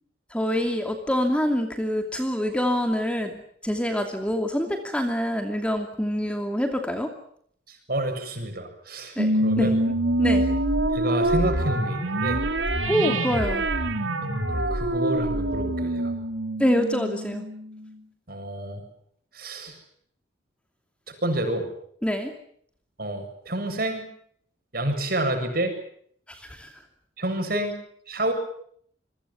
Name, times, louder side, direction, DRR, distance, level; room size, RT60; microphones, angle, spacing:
voice 1, 0.3-7.1 9.2-10.4 12.9-13.7 16.6-17.4 22.0-22.3 26.3-26.8 27.5-27.6, equal, 5° left, 5 dB, 2.7 m, -26 dB
voice 2, 7.7-9.7 10.9-12.4 14.2-16.1 18.3-18.8 19.3-19.8 21.2-21.7 23.0-24.1 24.7-25.7 27.2-27.7 28.1-28.3, right 1 dB, 50° right, 5 dB, 7.7 m, -29 dB
sound 1, 9.2-17.9, right 1 dB, 80° right, 3.9 m, -25 dB
28.0 x 23.0 x 7.2 m, 0.64 s
head